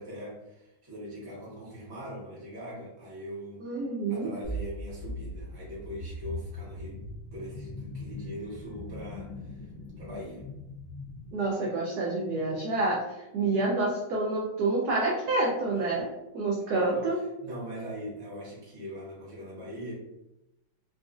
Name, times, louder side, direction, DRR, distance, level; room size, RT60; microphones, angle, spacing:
voice 1, 0.0-3.6 4.1-7.1 7.3-9.7 10.0-10.4 16.6-19.9, equal, 20° right, -6 dB, 0.7 m, -41 dB
voice 2, 3.6-4.3 11.3-13.0 13.3-16.1 16.3-17.2, right 2 dB, 75° right, -3 dB, 0.9 m, -28 dB
sound 1, 4.4-11.3, left 1 dB, 75° left, 0.8 m, -40 dB
3.8 x 2.4 x 2.5 m, 0.92 s
omnidirectional pair, 2.3 m